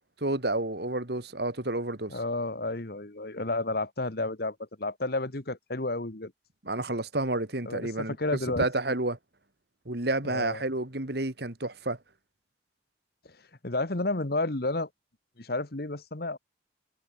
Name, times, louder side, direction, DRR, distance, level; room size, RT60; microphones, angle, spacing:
voice 1, 0.2-2.2 6.6-8.2 8.6-9.2 9.9-12.0, right 2 dB, 55° right, 2.2 m, -30 dB
voice 2, 2.1-6.3 7.6-8.7 10.3-10.6 13.2-13.3 13.6-14.9 15.4-16.4, left 2 dB, 55° left, 1.5 m, -31 dB
head